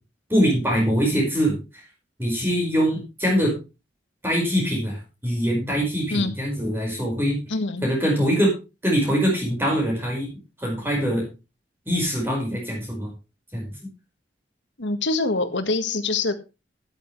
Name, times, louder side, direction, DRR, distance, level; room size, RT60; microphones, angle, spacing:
voice 1, 0.3-1.5 2.2-3.5 4.2-7.4 7.8-8.5 8.8-10.3 10.6-11.3 11.9-13.1 13.5-13.8, equal, 10° right, -1 dB, 5.3 m, -23 dB
voice 2, 7.5-7.9 14.8-16.3, left 3 dB, 90° left, 9 dB, 1.8 m, -24 dB
13.5 x 11.0 x 3.2 m, 0.28 s
head